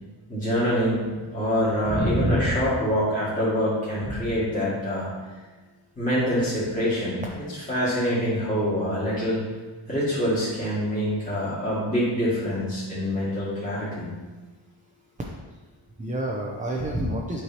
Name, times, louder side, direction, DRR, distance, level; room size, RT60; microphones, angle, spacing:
voice 1, 0.3-5.1 6.0-7.2 7.7-9.4 9.9-14.1, equal, 15° left, -11 dB, 2.1 m, -25 dB
voice 2, 1.8-2.7 4.1-4.3 16.0-17.4, right 1 dB, 15° right, -2 dB, 0.7 m, -27 dB
8.5 x 4.7 x 3.0 m, 1.3 s
wide cardioid pair, 105°, 48 cm